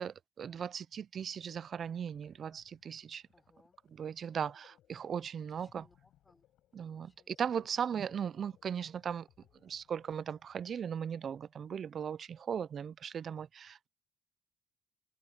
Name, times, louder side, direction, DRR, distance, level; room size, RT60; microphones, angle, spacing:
voice 1, 0.0-3.2 3.9-5.8 6.7-9.3 9.6-13.9, right 8 dB, 45° right, 0.3 m, -38 dB
sound 1, 0.9-11.8, left 13 dB, 80° left, 6.2 m, -70 dB
voice 2, 3.3-3.8 5.5-6.5 6.9-7.3 7.6-7.8, left 2 dB, 15° left, 4.0 m, -69 dB
cardioid pair, 130°, 0 cm